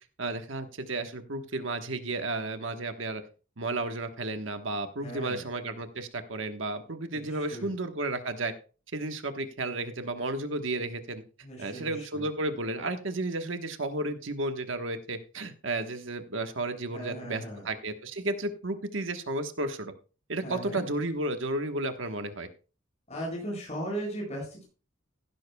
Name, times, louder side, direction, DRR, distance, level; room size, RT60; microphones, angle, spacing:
voice 1, 0.2-3.2 3.6-8.5 8.9-11.2 11.6-19.9 20.3-22.5, right 2 dB, 75° right, 7 dB, 1.3 m, -33 dB
voice 2, 5.0-5.4 7.5-7.7 11.4-12.2 16.9-17.6 20.4-20.8 23.1-24.6, right 1 dB, 35° left, -2 dB, 7.4 m, -37 dB
15.5 x 12.0 x 2.3 m, 0.35 s
head